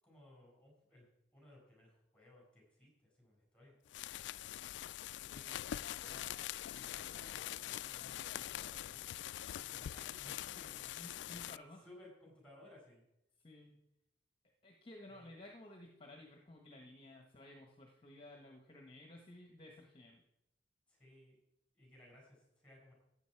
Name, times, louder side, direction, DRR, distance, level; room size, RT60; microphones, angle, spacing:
voice 1, 0.0-1.1 1.3-3.8 5.3-10.9 11.8-13.0 15.1-15.3 20.9-21.4 21.7-22.9, left 1 dB, 5° left, -1 dB, 5.3 m, -61 dB
sound 1, 3.9-11.6, left 12 dB, 75° left, 0.3 m, -44 dB
voice 2, 5.1-5.5 10.8-11.9 13.4-13.8 14.6-20.2, left 1 dB, 30° left, 2 dB, 1.2 m, -55 dB
15.0 x 8.4 x 4.7 m, 0.84 s
head